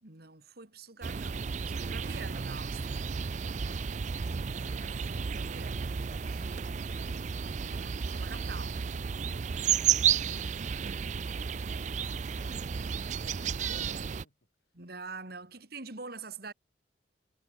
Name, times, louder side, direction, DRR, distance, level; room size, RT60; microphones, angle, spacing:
voice 1, 0.0-3.0 4.5-5.9 6.3-6.5 7.5-8.8 14.8-16.5, right 4 dB, 55° right, 2.7 m, -46 dB
sound 1, 1.0-14.2, right 7 dB, 40° right, 0.4 m, -32 dB
voice 2, 15.2-15.6, left 2 dB, 65° left, 8.0 m, -73 dB
head